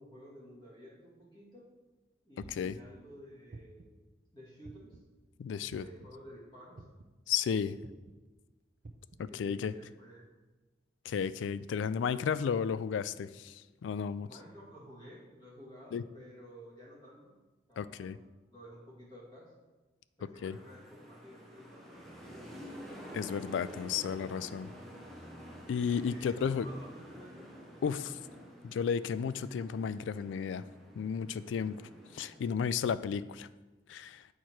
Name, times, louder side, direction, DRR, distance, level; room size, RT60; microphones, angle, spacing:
voice 1, 0.0-1.7 2.2-4.0 4.3-5.0 5.6-6.8 9.3-10.3 14.3-17.3 17.7-18.2 18.5-19.5 20.2-22.7 26.0-27.5, equal, 25° left, -5 dB, 2.2 m, -53 dB
sound 1, 2.4-2.8 3.5-4.0 4.6-5.1 5.7-6.1 6.8-7.2 7.8-8.1 8.8-9.2, right 2 dB, 50° right, 0.5 m, -50 dB
voice 2, 5.4-5.8 7.3-7.8 9.2-9.7 11.1-14.3 15.9-16.0 17.8-18.2 20.4-20.6 23.1-24.7 25.7-26.7 27.8-28.2 28.6-30.6 31.0-31.8 32.1-33.5 33.9-34.2, left 7 dB, 85° left, 16 dB, 0.3 m, -33 dB
sound 2, 20.5-32.6, equal, ahead, 0.9 m, -50 dB
8.3 x 4.6 x 4.4 m, 1.2 s
head